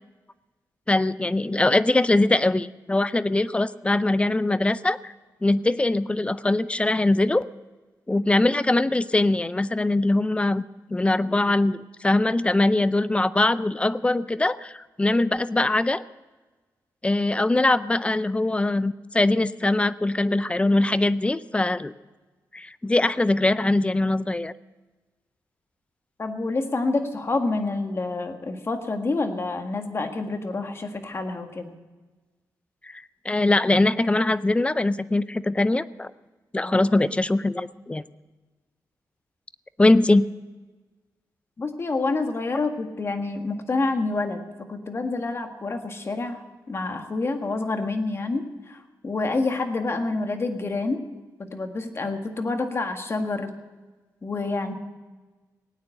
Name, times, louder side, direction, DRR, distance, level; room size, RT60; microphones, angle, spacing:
voice 1, 0.9-5.1 5.4-7.5 8.1-10.6 10.9-14.7 15.0-16.0 17.0-21.9 22.5-24.5 32.9-36.1 36.5-38.0 39.8-40.3, left 2 dB, 15° left, 16 dB, 0.5 m, -22 dB
voice 2, 26.2-31.7 36.6-36.9 41.6-51.1 51.4-53.5 54.2-54.7, left 3 dB, 40° left, 5 dB, 1.7 m, -28 dB
17.5 x 9.4 x 7.7 m, 1.3 s
cardioid pair, 90°, 7 cm